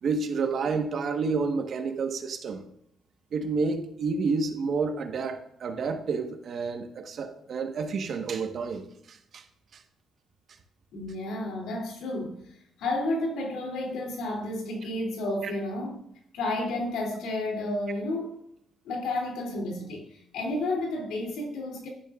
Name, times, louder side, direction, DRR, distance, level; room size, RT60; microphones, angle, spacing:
voice 1, 0.0-2.6 3.3-9.4 9.7-9.8 15.4-15.5, right 4 dB, 60° right, 1.3 m, -30 dB
voice 2, 10.9-12.4 12.8-16.0 16.3-18.4 18.8-21.9, left 2 dB, 85° left, 3.0 m, -31 dB
11.5 x 10.5 x 2.5 m
cardioid pair, 90°, 0 cm